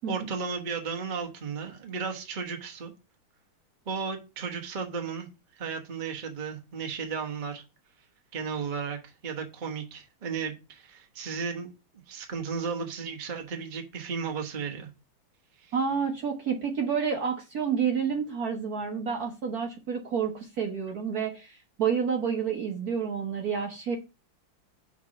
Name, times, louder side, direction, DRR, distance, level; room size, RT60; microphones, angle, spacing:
voice 1, 0.1-2.9 3.9-5.3 5.6-7.6 8.3-11.7 12.1-14.9 15.6-15.7, right 5 dB, 30° right, 0.9 m, -34 dB
voice 2, 15.7-24.0, right 6 dB, 55° right, 1.2 m, -29 dB
5.9 x 4.0 x 5.6 m
omnidirectional pair, 2.4 m